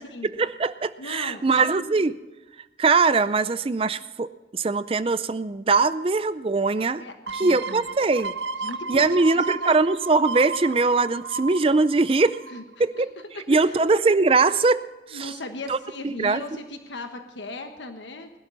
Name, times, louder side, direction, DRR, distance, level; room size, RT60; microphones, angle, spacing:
voice 1, 0.4-2.1 2.8-7.0 7.3-8.3 8.9-12.4 12.8-13.1 13.5-14.8 15.1-15.3 15.7-15.8 16.0-16.4, right 3 dB, 30° right, 14 dB, 0.4 m, -21 dB
voice 2, 1.0-1.8 7.0-7.9 8.6-9.1 9.3-9.7 12.5-12.6 13.0-13.1 13.3-13.9 15.1-18.3, left 2 dB, 85° left, 6 dB, 1.4 m, -38 dB
sound 1, 7.3-12.8 13.2-13.3, right 4 dB, 75° right, 0.6 m, -34 dB
21.0 x 12.0 x 4.0 m, 1.1 s
head